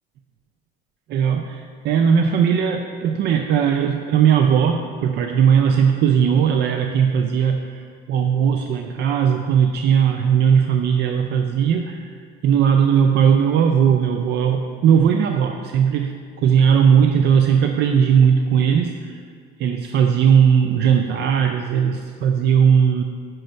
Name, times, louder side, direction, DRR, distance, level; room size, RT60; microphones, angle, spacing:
voice 1, 1.1-19.2 19.6-23.0, right 7 dB, 60° right, 5 dB, 0.4 m, -18 dB
5.9 x 4.5 x 6.4 m, 2.1 s
cardioid pair, 115°, 20 cm